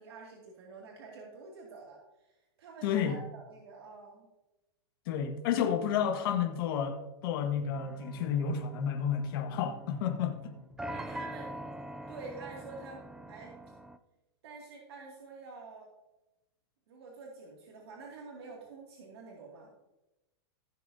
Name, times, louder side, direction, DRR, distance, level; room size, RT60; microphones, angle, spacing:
voice 1, 0.0-4.3 10.9-11.7 12.1-13.6 14.4-15.9 16.9-19.7, right 4 dB, 70° right, -2 dB, 2.4 m, -48 dB
voice 2, 2.8-3.2 5.1-10.5, left 8 dB, 55° left, 4 dB, 1.6 m, -31 dB
sound 1, 7.7-14.0, right 1 dB, 5° right, 0.4 m, -44 dB
16.0 x 7.5 x 2.8 m, 0.98 s
hypercardioid pair, 140°, 14 cm